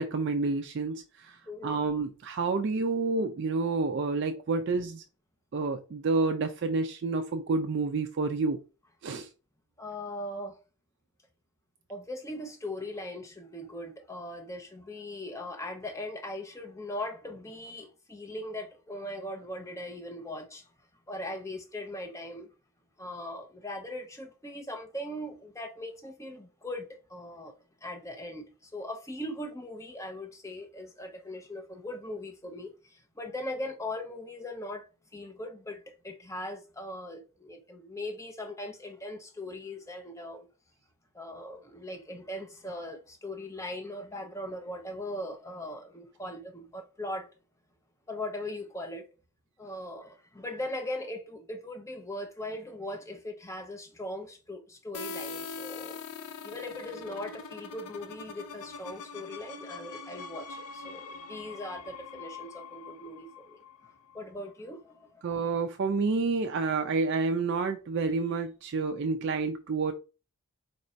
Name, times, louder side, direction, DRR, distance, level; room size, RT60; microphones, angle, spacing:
voice 1, 0.0-5.0 5.5-8.6 9.0-9.3 65.2-69.9, right 4 dB, 50° right, 0.3 m, -29 dB
voice 2, 1.4-1.8 9.8-10.6 11.9-20.7 21.1-22.5 23.0-27.5 27.8-34.9 35.1-40.5 41.1-47.3 48.1-49.1 49.6-56.0 56.4-63.6 64.1-65.2, left 1 dB, 15° left, 0.7 m, -39 dB
sound 1, 54.9-64.5, left 4 dB, 85° left, 0.5 m, -43 dB
4.0 x 2.5 x 4.3 m
head